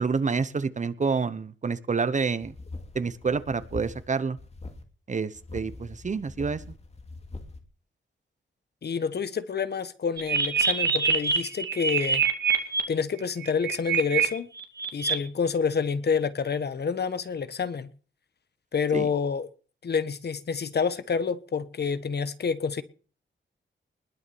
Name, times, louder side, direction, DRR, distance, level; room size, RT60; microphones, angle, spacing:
voice 1, 0.0-2.5 2.9-4.4 5.1-6.6 18.9-19.1, right 5 dB, 40° right, 0.9 m, -28 dB
sound 1, 2.4-4.1 4.4-4.8 5.3-7.6, left 2 dB, 30° left, 2.6 m, -42 dB
voice 2, 8.8-12.2 12.9-14.5 14.9-17.9 18.7-19.5 19.8-22.8, left 6 dB, 55° left, 1.2 m, -28 dB
sound 2, 10.2-12.8 13.4-14.2 14.6-15.1, right 6 dB, 60° right, 2.4 m, -24 dB
20.5 x 7.2 x 7.1 m
wide cardioid pair, 150°, 20 cm